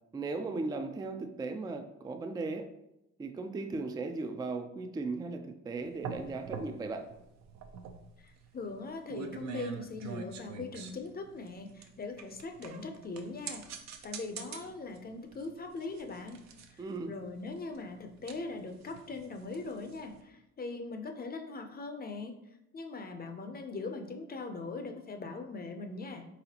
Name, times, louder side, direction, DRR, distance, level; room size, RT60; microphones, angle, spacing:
voice 1, 0.1-2.7 3.2-7.0 16.8-17.1, right 3 dB, 15° right, 7 dB, 0.3 m, -37 dB
sound 1, 5.8-20.2, right 6 dB, 65° right, 0.6 m, -46 dB
voice 2, 8.2-13.6 14.0-16.4 16.7-22.3 22.7-26.3, left 3 dB, 30° left, 5 dB, 0.6 m, -41 dB
4.1 x 3.9 x 2.8 m, 0.87 s
cardioid pair, 90°, 30 cm